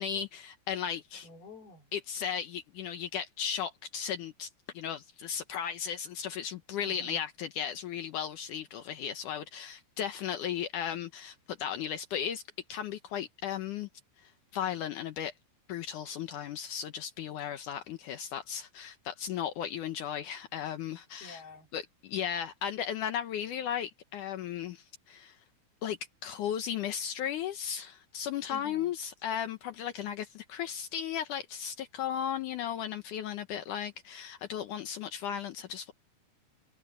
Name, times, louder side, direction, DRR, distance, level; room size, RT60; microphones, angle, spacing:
voice 1, 0.0-1.3 1.9-4.5 4.7-12.4 12.7-13.9 14.5-15.3 15.7-21.4 21.7-25.3 25.8-35.9, left 9 dB, 85° left, 1.8 m, -35 dB
voice 2, 1.2-1.9 6.8-7.2 21.2-21.7 28.5-28.9, left 1 dB, 60° left, 6.0 m, -49 dB
omnidirectional pair, 5.1 m